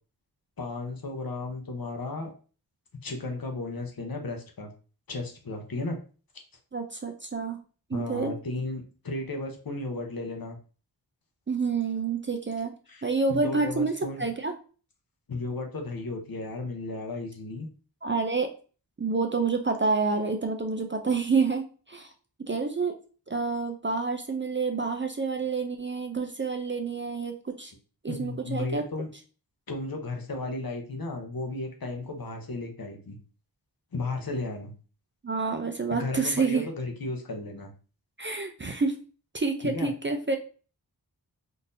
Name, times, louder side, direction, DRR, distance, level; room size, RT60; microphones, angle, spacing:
voice 1, 0.6-2.3 3.0-4.7 5.1-6.0 7.9-10.6 12.9-13.0 13.3-14.3 15.3-17.7 28.1-29.1 29.7-33.2 33.9-34.7 35.9-37.7 39.6-39.9, left 2 dB, 55° left, 3 dB, 0.8 m, -34 dB
voice 2, 6.7-7.6 7.9-8.3 11.5-12.7 13.0-14.5 18.0-18.5 19.0-22.1 22.4-23.0 23.3-27.7 28.0-28.8 35.2-36.6 38.2-38.9 39.3-40.4, right 4 dB, 30° right, 4 dB, 0.4 m, -28 dB
3.8 x 2.7 x 2.5 m, 0.37 s
wide cardioid pair, 55°, 42 cm